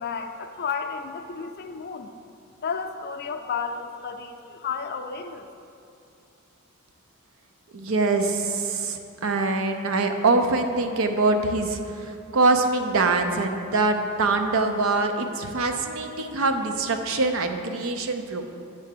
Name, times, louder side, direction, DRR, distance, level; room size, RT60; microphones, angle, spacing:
voice 1, 0.0-2.1 2.6-5.5, left 5 dB, 50° left, 6 dB, 0.5 m, -32 dB
voice 2, 7.7-18.4, right 3 dB, 70° right, 6 dB, 0.6 m, -24 dB
9.0 x 3.4 x 6.7 m, 2.6 s
head